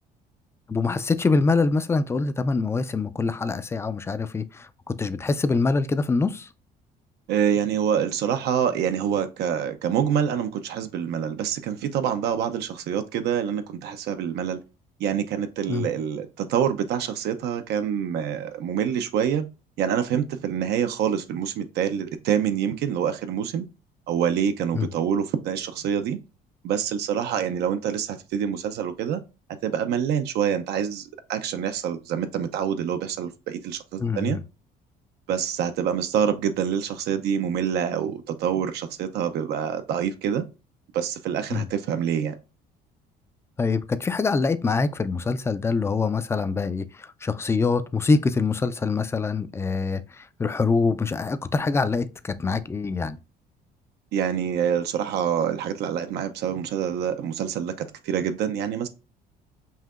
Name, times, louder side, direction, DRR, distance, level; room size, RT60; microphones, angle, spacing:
voice 1, 0.7-6.5 15.7-15.9 24.7-24.9 34.0-34.4 41.5-41.7 43.6-53.2, left 4 dB, 15° left, 0.3 m, -24 dB
voice 2, 7.3-14.6 15.0-19.5 19.8-23.7 24.1-26.2 26.6-29.2 29.6-34.4 35.3-40.4 40.9-42.4 54.1-58.9, right 8 dB, 75° right, 0.5 m, -26 dB
5.6 x 2.7 x 2.4 m
cardioid pair, 110°, 17 cm